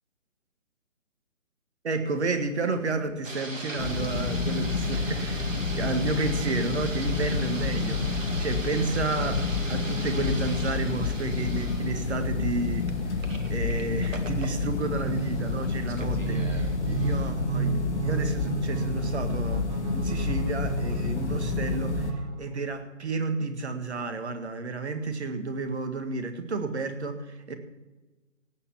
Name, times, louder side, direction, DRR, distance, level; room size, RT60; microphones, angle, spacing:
voice 1, 1.8-19.7 19.9-27.6, right 3 dB, 55° right, 8 dB, 2.0 m, -32 dB
sound 1, 3.2-17.3, right 2 dB, 75° right, 2.3 m, -40 dB
sound 2, 3.8-22.1, left 4 dB, 60° left, 1.7 m, -29 dB
sound 3, 14.8-22.7, right 6 dB, 35° right, 1.8 m, -33 dB
17.5 x 7.0 x 7.2 m, 1.2 s
figure-of-eight pair, 140°, 39 cm